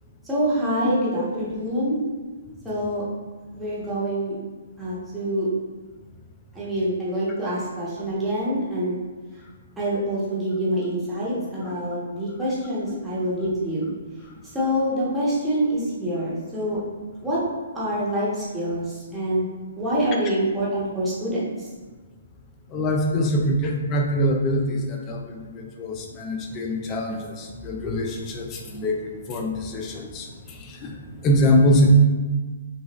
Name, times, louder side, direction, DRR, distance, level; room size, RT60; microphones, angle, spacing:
voice 1, 0.3-2.0 2.6-3.0 3.5-4.3 4.8-5.5 6.5-9.0 9.8-13.9 14.5-16.8 17.2-17.4 17.7-19.5 19.8-21.7, equal, 5° right, -9 dB, 1.3 m, -26 dB
voice 2, 22.7-24.8 25.1-28.4 28.7-29.0 29.3-30.2 30.8-30.9 31.2-31.9, equal, 25° left, 2 dB, 0.6 m, -23 dB
5.2 x 2.4 x 3.1 m, 1.3 s
hypercardioid pair, 145°, 0 cm